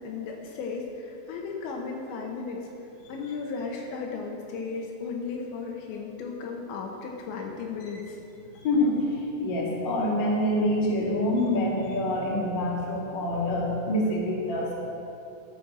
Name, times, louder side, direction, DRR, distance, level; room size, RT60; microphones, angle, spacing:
voice 1, 0.0-2.7 3.1-8.2, left 4 dB, 75° left, 1 dB, 3.1 m, -35 dB
voice 2, 8.5-14.7, left 1 dB, 50° left, -4 dB, 1.3 m, -26 dB
12.5 x 7.8 x 6.3 m, 2.9 s
omnidirectional pair, 5.7 m